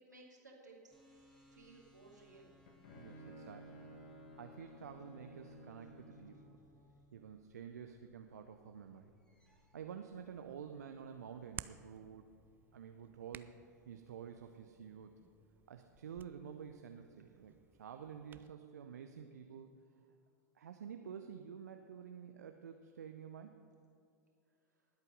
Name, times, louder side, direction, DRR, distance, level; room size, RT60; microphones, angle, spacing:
voice 1, 0.0-2.5, right 2 dB, 85° right, -2 dB, 2.7 m, -59 dB
sound 1, 0.9-10.0, left 2 dB, 10° left, 2.6 m, -66 dB
Bowed string instrument, 2.3-6.5, equal, 55° left, 1.8 m, -55 dB
voice 2, 2.9-6.6 7.1-9.1 9.7-12.3 12.7-13.5 13.9-15.2 15.7-17.5 17.8-19.7 20.5-23.5, right 7 dB, 70° right, 6 dB, 0.7 m, -50 dB
Hands, 10.1-18.5, right 8 dB, 20° right, 0.4 m, -57 dB
19.5 x 8.2 x 5.3 m, 2.6 s
figure-of-eight pair, 85°, 9 cm